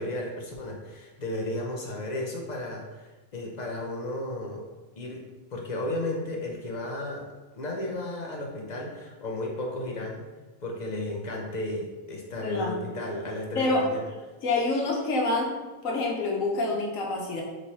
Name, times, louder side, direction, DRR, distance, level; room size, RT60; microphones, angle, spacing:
voice 1, 0.0-4.6 5.0-5.2 5.5-7.3 7.5-10.2 10.6-14.1, left 1 dB, 45° left, 0 dB, 0.6 m, -34 dB
voice 2, 12.4-12.9 13.5-13.8 14.4-15.5 15.8-17.4, left 2 dB, 85° left, -1 dB, 1.3 m, -27 dB
3.8 x 3.2 x 4.1 m, 1.2 s
omnidirectional pair, 1.3 m